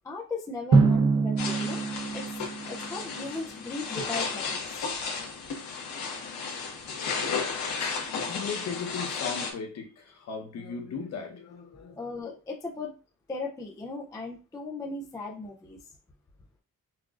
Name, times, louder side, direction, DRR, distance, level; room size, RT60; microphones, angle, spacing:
voice 1, 0.0-1.8 2.1-4.9 7.3-7.4 11.9-12.9 13.3-15.9, left 3 dB, 10° left, 0.3 m, -37 dB
Drum, 0.7-3.4, right 4 dB, 50° right, 0.8 m, -25 dB
sound 1, 1.4-9.5, left 5 dB, 75° left, 1.2 m, -34 dB
voice 2, 7.8-12.3, left 5 dB, 50° left, 0.9 m, -37 dB
5.9 x 2.3 x 2.4 m
cardioid pair, 175°, 35 cm